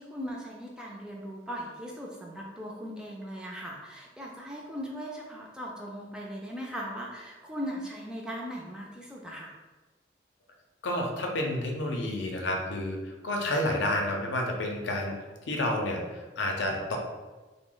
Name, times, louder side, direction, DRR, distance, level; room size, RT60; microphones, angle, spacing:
voice 1, 0.0-9.6, equal, 5° right, -2 dB, 0.3 m, -39 dB
voice 2, 10.8-15.1 15.5-17.0, left 1 dB, 80° left, 1 dB, 0.5 m, -30 dB
2.9 x 2.0 x 3.7 m, 1.2 s
head